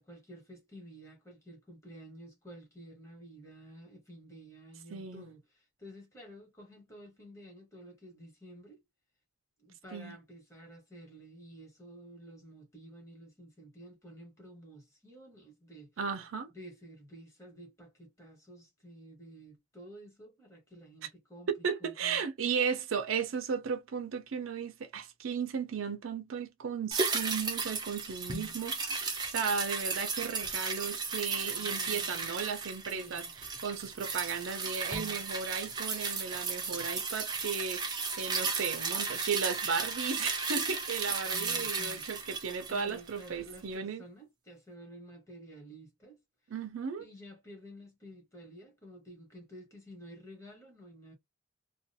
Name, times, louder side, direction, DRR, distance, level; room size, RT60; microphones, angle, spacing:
voice 1, 0.0-8.8 9.6-15.9 16.5-22.2 31.4-32.4 32.9-33.3 41.3-42.1 42.7-46.2 47.0-51.1, equal, 15° left, 1.2 m, -51 dB
voice 2, 4.9-5.3 9.9-10.2 16.0-16.5 21.5-33.2 33.6-44.0 46.5-47.0, right 6 dB, 75° right, 0.5 m, -35 dB
sound 1, 26.9-43.4 43.7-43.8, right 4 dB, 20° right, 0.6 m, -35 dB
2.5 x 2.2 x 2.6 m
head